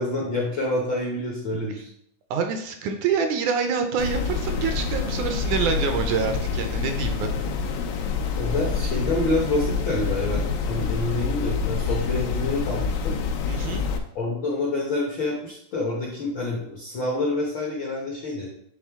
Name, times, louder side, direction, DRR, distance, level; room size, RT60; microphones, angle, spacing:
voice 1, 0.0-1.9 8.4-13.2 14.1-18.5, left 2 dB, 70° left, -2 dB, 1.1 m, -27 dB
voice 2, 2.3-7.3 13.5-13.8, right 6 dB, 75° right, 5 dB, 1.9 m, -26 dB
sound 1, 4.0-14.0, left 5 dB, 90° left, 2.4 m, -27 dB
9.3 x 3.7 x 3.5 m, 0.70 s
omnidirectional pair, 3.7 m